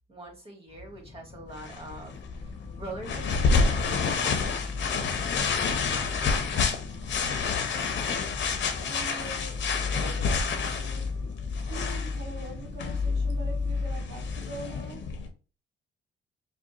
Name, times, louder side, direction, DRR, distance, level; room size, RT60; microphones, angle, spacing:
voice 1, 0.1-4.3, right 2 dB, 30° right, 1.9 m, -43 dB
sound 1, 0.8-14.8, left 4 dB, 30° left, 0.6 m, -35 dB
sound 2, 1.6-15.3, left 5 dB, 65° left, 0.9 m, -29 dB
voice 2, 8.1-15.1, right 3 dB, 90° right, 0.8 m, -44 dB
5.0 x 2.4 x 2.8 m
cardioid pair, 90°, 20 cm